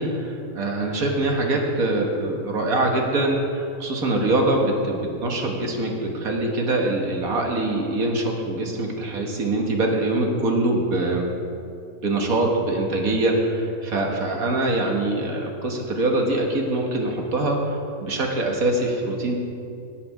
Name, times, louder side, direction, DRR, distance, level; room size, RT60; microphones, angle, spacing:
voice 1, 0.0-11.3 12.0-19.3, right 2 dB, 70° right, 1 dB, 2.0 m, -23 dB
18.0 x 7.0 x 4.9 m, 2.5 s
omnidirectional pair, 1.6 m